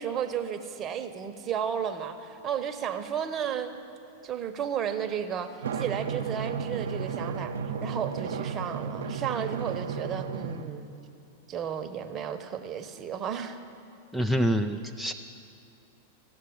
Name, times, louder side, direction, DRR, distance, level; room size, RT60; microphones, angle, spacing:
voice 1, 0.0-3.7 4.2-7.5 7.8-10.9 11.5-13.6, right 8 dB, 30° right, 8 dB, 1.0 m, -33 dB
Drum, 5.6-10.7, right 6 dB, 75° right, 0.8 m, -33 dB
voice 2, 14.1-15.1, equal, ahead, 6 dB, 0.5 m, -26 dB
15.5 x 7.4 x 8.7 m, 2.7 s
hypercardioid pair, 100°, 0 cm